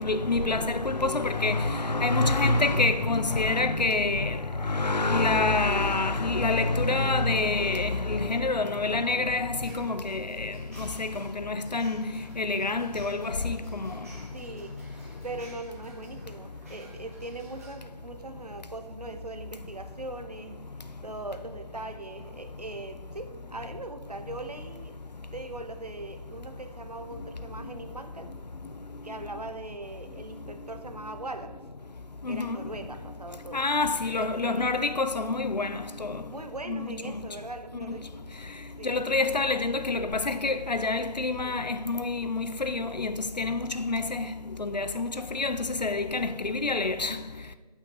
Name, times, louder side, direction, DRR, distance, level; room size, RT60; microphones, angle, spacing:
voice 1, 0.0-10.5 10.8-12.0 12.4-13.9 32.2-32.6 33.5-36.2 36.7-36.9 38.8-44.3 44.6-47.2, left 3 dB, 85° left, 0.6 m, -27 dB
sound 1, 9.6-17.8, right 2 dB, 20° right, 1.6 m, -54 dB
voice 2, 14.3-14.8 15.2-20.6 21.0-25.0 25.3-28.3 29.0-31.6 32.2-33.7 34.2-34.7 36.3-38.2 38.8-39.0, right 2 dB, 70° right, 0.9 m, -40 dB
14.5 x 5.8 x 2.9 m
figure-of-eight pair, 170°, 21 cm